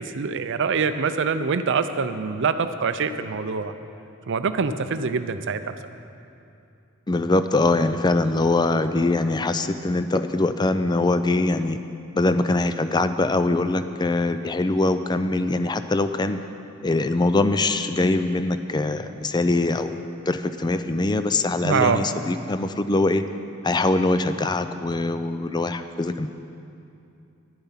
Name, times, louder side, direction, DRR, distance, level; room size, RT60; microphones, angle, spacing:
voice 1, 0.0-3.7 4.3-5.7 21.6-22.0, right 5 dB, 60° right, 10 dB, 0.5 m, -24 dB
voice 2, 7.1-11.8 12.1-16.4 16.8-20.0 20.3-23.2 23.6-26.3, left 2 dB, 20° left, 10 dB, 0.4 m, -23 dB
10.5 x 10.5 x 5.7 m, 2.6 s
head